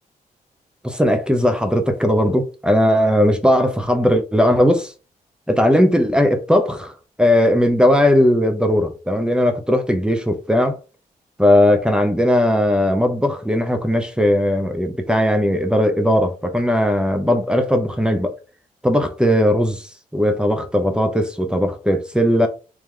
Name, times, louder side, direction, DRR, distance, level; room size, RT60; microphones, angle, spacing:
voice 1, 0.8-4.9 5.5-10.8 11.4-18.4 18.8-22.5, left 1 dB, 5° right, 0.7 m, -18 dB
3.2 x 2.8 x 3.7 m
cardioid pair, 90°, 15 cm